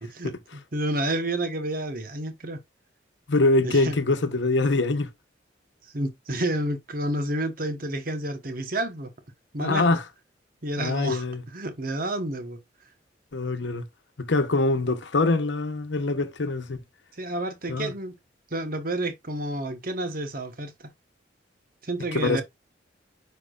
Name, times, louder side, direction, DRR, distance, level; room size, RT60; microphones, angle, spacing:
voice 1, 0.0-2.6 3.6-4.0 5.8-9.1 9.5-10.0 10.6-12.6 17.1-18.2 18.5-20.9 21.8-22.4, right 1 dB, 50° right, 1.1 m, -30 dB
voice 2, 3.3-5.1 9.6-10.0 10.8-11.4 13.3-13.8 14.2-16.8 17.7-17.9 22.1-22.4, left 2 dB, 80° left, 1.0 m, -24 dB
9.6 x 4.6 x 2.4 m
head